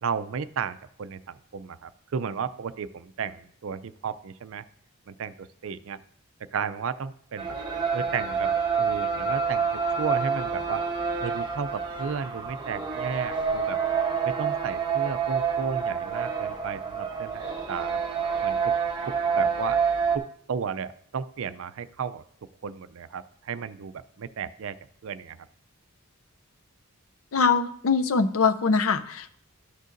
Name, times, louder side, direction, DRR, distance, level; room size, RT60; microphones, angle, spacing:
voice 1, 0.0-4.7 5.1-6.0 6.5-7.6 7.9-8.5 8.8-10.8 11.2-13.8 14.2-18.0 18.4-18.7 19.1-19.8 20.1-22.2 22.6-24.8 25.0-25.5, right 6 dB, 60° right, 14 dB, 0.4 m, -34 dB
sound 1, 7.4-20.2, right 6 dB, 20° right, 0.9 m, -27 dB
voice 2, 27.3-29.4, left 5 dB, 70° left, 11 dB, 0.5 m, -23 dB
13.0 x 6.5 x 2.6 m, 0.64 s
head